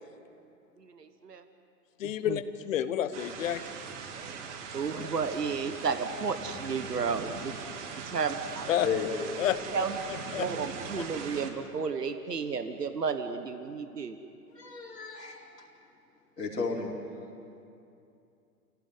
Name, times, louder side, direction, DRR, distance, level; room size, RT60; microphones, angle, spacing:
voice 1, 0.8-1.4 2.0-2.4 4.1-7.6 8.1-8.7 9.7-10.0 10.4-14.2, right 5 dB, 80° right, 8 dB, 1.5 m, -33 dB
voice 2, 2.0-3.6 8.7-8.9 9.4-10.5 11.0-11.1, left 11 dB, 55° left, 12 dB, 1.4 m, -30 dB
sound 1, 3.1-11.5, right 6 dB, 50° right, 3.1 m, -41 dB
voice 3, 14.5-15.7 16.4-16.9, left 5 dB, 85° left, -2 dB, 4.7 m, -33 dB
28.5 x 17.0 x 9.7 m, 2.6 s
figure-of-eight pair, 110°, 47 cm